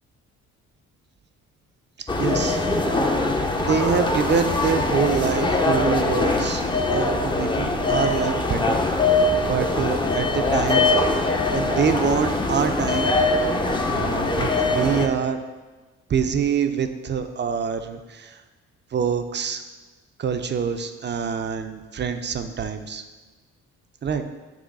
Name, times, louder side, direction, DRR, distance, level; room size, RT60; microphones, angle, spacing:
voice 1, 2.0-2.6 3.6-6.6 6.9-8.8 9.5-10.9 11.5-13.1 13.9-15.4 16.1-18.4 18.9-19.6 20.2-23.0 24.0-24.2, right 6 dB, 35° right, 8 dB, 0.5 m, -25 dB
sound 1, 2.1-15.1, left 2 dB, 15° left, 0.6 m, -22 dB
6.1 x 3.1 x 5.3 m, 1.2 s
cardioid pair, 90°, 30 cm